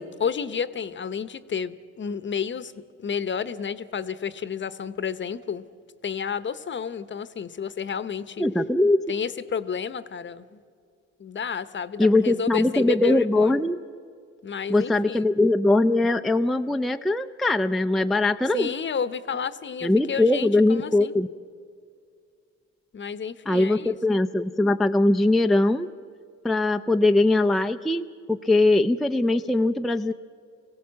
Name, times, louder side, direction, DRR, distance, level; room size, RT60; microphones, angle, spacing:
voice 1, 0.0-2.7 3.0-5.6 6.0-8.4 9.1-10.6 11.2-13.6 14.4-15.3 18.5-21.1 22.9-24.2, left 7 dB, 40° left, 14 dB, 0.9 m, -31 dB
voice 2, 8.4-9.0 12.0-13.8 14.7-18.7 19.8-21.3 23.5-25.9 26.4-30.1, left 2 dB, ahead, 6 dB, 0.4 m, -21 dB
24.0 x 16.5 x 7.5 m, 2.2 s
cardioid pair, 90°, 30 cm